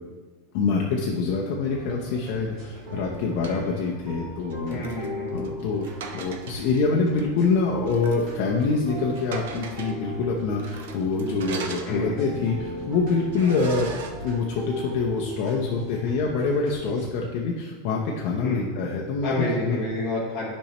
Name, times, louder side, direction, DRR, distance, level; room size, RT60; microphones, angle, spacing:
voice 1, 0.5-4.9 5.3-5.9 6.1-13.9 14.2-19.8, left 4 dB, 40° left, -2 dB, 0.7 m, -25 dB
sound 1, 1.6-17.1, equal, 40° right, 2.4 m, -38 dB
sound 2, 2.8-3.6 4.5-6.8 7.2-7.3 7.9-8.3 8.6-8.7 9.1-10.0 10.6-12.4 12.8-12.9 13.3-14.1, right 5 dB, 75° right, 0.7 m, -40 dB
voice 2, 4.7-5.3 11.9-12.2 18.4-18.6 19.2-20.4, left 2 dB, 15° left, -8 dB, 1.0 m, -29 dB
10.0 x 5.3 x 3.0 m, 1.4 s
supercardioid pair, 180°, 0 cm